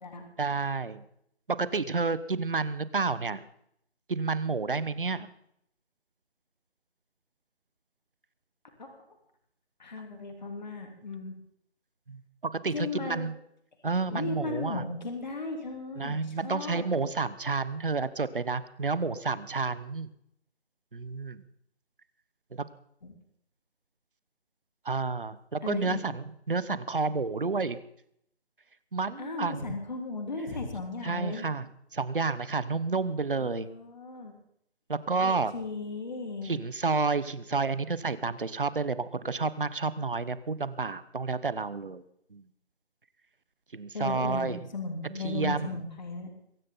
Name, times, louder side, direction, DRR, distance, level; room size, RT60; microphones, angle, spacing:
voice 1, 0.4-1.0 1.5-3.4 4.1-5.3 12.1-12.2 12.6-13.3 13.8-14.8 16.0-20.1 20.9-21.4 22.5-22.6 24.8-27.8 28.9-29.8 31.0-33.7 34.9-35.5 36.4-42.0 42.3-42.5 43.7-44.6 45.0-45.8, right 4 dB, 55° right, 15 dB, 1.3 m, -30 dB
voice 2, 9.8-11.4 12.7-13.3 13.8-16.9 23.0-23.1 25.6-26.1 29.2-31.5 33.4-34.3 35.2-36.6 43.9-46.3, left 3 dB, 45° left, 3 dB, 3.4 m, -36 dB
23.0 x 11.0 x 3.9 m, 0.71 s
figure-of-eight pair, 175°, 33 cm